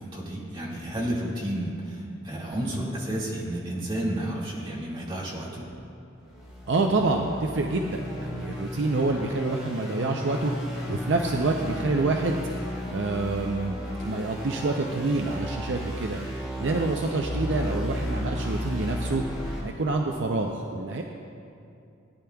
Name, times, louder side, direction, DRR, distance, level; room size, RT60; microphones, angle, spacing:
voice 1, 0.0-5.6, right 1 dB, 25° right, -6 dB, 2.0 m, -31 dB
sound 1, 5.6-5.8 6.3-19.6, equal, 5° right, 2.6 m, -34 dB
voice 2, 6.7-12.4 12.9-13.8 14.0-16.2 16.6-19.2 19.6-21.0, right 3 dB, 60° right, 2 dB, 0.5 m, -27 dB
17.5 x 10.0 x 2.3 m, 2.6 s
head